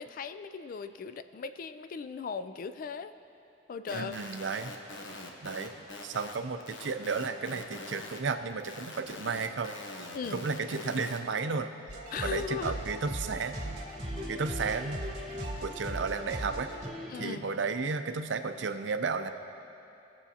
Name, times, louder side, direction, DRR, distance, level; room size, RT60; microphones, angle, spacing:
voice 1, 0.0-3.1 3.7-4.2 10.1-10.4 12.1-12.8 17.1-17.4, left 5 dB, 45° left, 11 dB, 0.3 m, -38 dB
sound 1, 3.9-8.2 8.5-11.2, left 2 dB, 75° left, 0.9 m, -44 dB
voice 2, 3.9-4.7 5.4-5.7 6.0-11.7 12.2-13.6 14.3-15.1 15.6-16.7 17.2-19.3, right 4 dB, 70° right, 8 dB, 0.5 m, -33 dB
sound 2, 11.9-16.9, right 1 dB, 45° right, 2.3 m, -38 dB
sound 3, 13.4-16.4 16.8-17.8, left 1 dB, 5° left, 0.9 m, -46 dB
19.0 x 7.1 x 2.8 m, 2.8 s
head